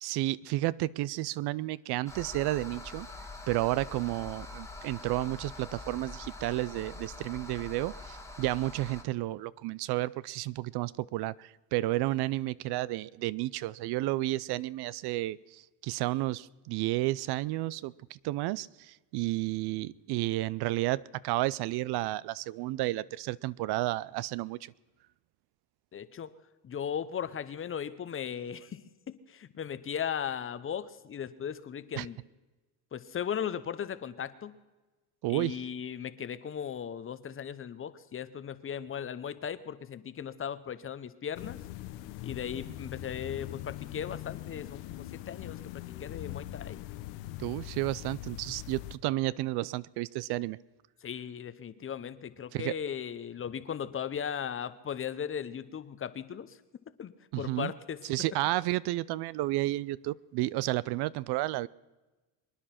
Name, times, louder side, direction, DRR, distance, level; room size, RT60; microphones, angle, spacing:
voice 1, 0.0-3.1 3.5-24.7 32.0-32.1 35.2-35.6 47.4-50.6 52.5-52.8 57.3-57.7 58.0-61.7, right 17 dB, 60° right, 21 dB, 0.5 m, -32 dB
sound 1, 2.1-9.0, left 2 dB, 5° left, 1.5 m, -44 dB
voice 2, 25.9-26.3 26.6-32.2 32.9-34.5 35.3-41.6 42.2-46.8 51.0-56.6 57.0-58.0, left 8 dB, 30° left, 14 dB, 0.8 m, -37 dB
sound 2, 41.3-49.0, left 15 dB, 75° left, 1.0 m, -42 dB
24.5 x 10.0 x 5.8 m, 1.2 s
cardioid pair, 115°, 44 cm